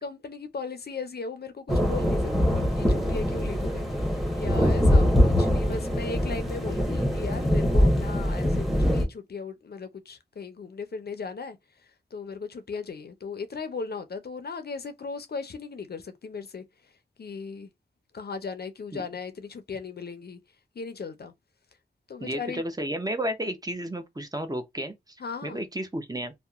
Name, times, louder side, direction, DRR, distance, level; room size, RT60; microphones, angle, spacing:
voice 1, 0.0-3.8 4.1-11.6 12.1-16.6 17.2-17.7 18.1-20.4 20.8-21.3 22.1-22.6 25.2-25.6, left 4 dB, 60° left, 0.5 m, -37 dB
sound 1, 1.7-9.0, equal, ahead, 0.9 m, -23 dB
voice 2, 22.2-25.2 25.4-26.3, right 1 dB, 20° right, 0.6 m, -32 dB
2.8 x 2.1 x 2.3 m
cardioid pair, 40°, 18 cm